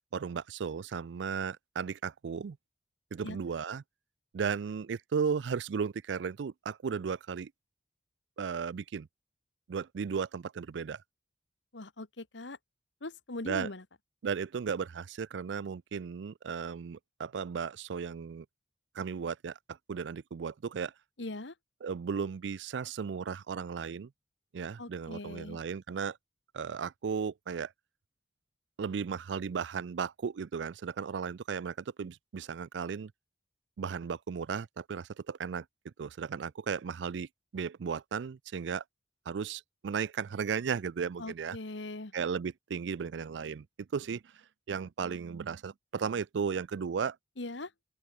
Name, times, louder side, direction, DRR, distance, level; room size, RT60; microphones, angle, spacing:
voice 1, 0.1-2.6 3.1-3.8 4.3-7.5 8.4-9.1 9.7-11.0 13.5-13.7 14.2-18.5 18.9-20.9 21.8-24.1 24.5-26.2 26.5-27.7 28.8-33.1 33.8-38.8 39.3-41.6 42.1-44.2 44.7-47.2, right 6 dB, 75° right, 0.4 m, -35 dB
voice 2, 11.7-12.6 13.0-13.8 21.2-21.5 24.8-25.6 41.2-42.1 47.4-47.7, left 2 dB, 85° left, 1.6 m, -41 dB
open air
head